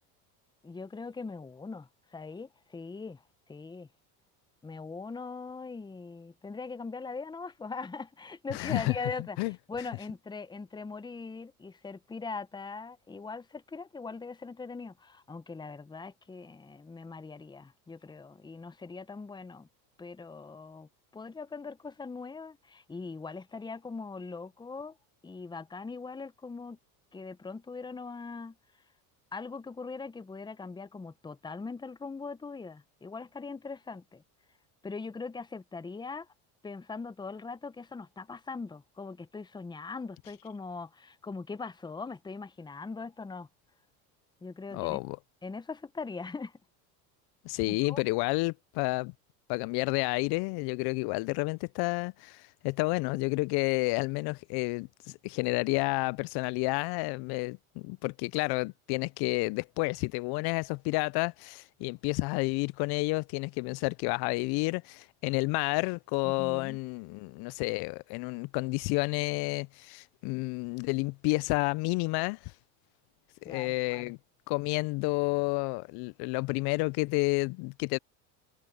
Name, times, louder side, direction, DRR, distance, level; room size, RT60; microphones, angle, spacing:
voice 1, 0.6-3.9 4.6-19.7 20.0-25.0 25.2-26.8 27.1-28.6 29.3-34.2 34.8-36.3 36.6-43.5 44.4-45.0 45.4-46.6 47.7-48.0 66.2-66.8 73.4-74.1, left 4 dB, 10° left, 0.8 m, -41 dB
voice 2, 8.5-8.9 9.4-9.5 44.7-45.2 47.4-49.1 49.5-54.9 55.2-72.5 73.4-74.2 74.5-78.0, left 26 dB, 60° left, 0.5 m, -30 dB
supercardioid pair, 95°, 43 cm